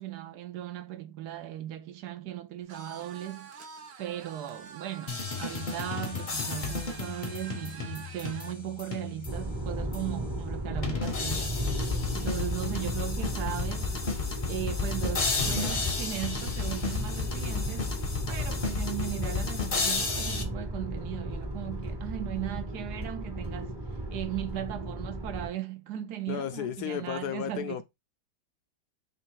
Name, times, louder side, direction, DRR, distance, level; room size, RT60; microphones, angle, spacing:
voice 1, 0.0-3.5 4.0-11.6 12.1-13.9 14.5-17.9 18.3-27.8, right 12 dB, 75° right, 1.1 m, -37 dB
sound 1, 2.7-8.6, right 6 dB, 60° right, 0.7 m, -47 dB
sound 2, 5.1-9.5 9.9-10.0 10.8-20.4, left 5 dB, 40° left, 0.7 m, -33 dB
sound 3, 9.3-25.5, right 1 dB, 20° right, 0.7 m, -35 dB
voice 2, 26.3-27.8, left 10 dB, 75° left, 1.0 m, -33 dB
3.2 x 3.2 x 4.6 m
omnidirectional pair, 1.9 m